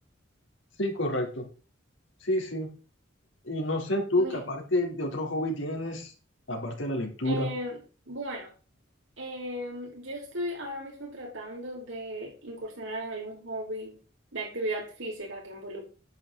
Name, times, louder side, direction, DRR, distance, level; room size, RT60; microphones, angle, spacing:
voice 1, 0.8-1.5 2.2-2.7 3.4-6.1 6.5-7.5, left 1 dB, 70° left, 2 dB, 3.8 m, -29 dB
voice 2, 7.2-7.8 8.0-8.5 9.2-14.0 14.3-15.8, right 1 dB, 75° right, 0 dB, 5.0 m, -36 dB
10.5 x 8.8 x 4.1 m, 0.34 s
head